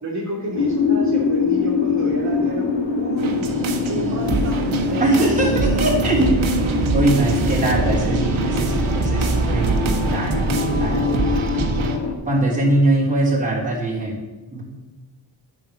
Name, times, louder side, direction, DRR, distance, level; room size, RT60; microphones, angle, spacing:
voice 1, 0.0-2.7 3.0-3.4 3.8-5.6 7.2-7.3, right 1 dB, 35° right, -6 dB, 2.9 m, -29 dB
sound 1, 0.5-12.1, left 5 dB, 65° left, 1.5 m, -24 dB
sound 2, 3.2-12.0, right 3 dB, 85° right, 1.3 m, -23 dB
voice 2, 5.0-6.3 6.9-11.1 12.2-14.2 14.5-14.6, right 2 dB, 15° right, -6 dB, 3.5 m, -22 dB
9.3 x 5.3 x 7.0 m, 1.2 s
wide cardioid pair, 90°, 46 cm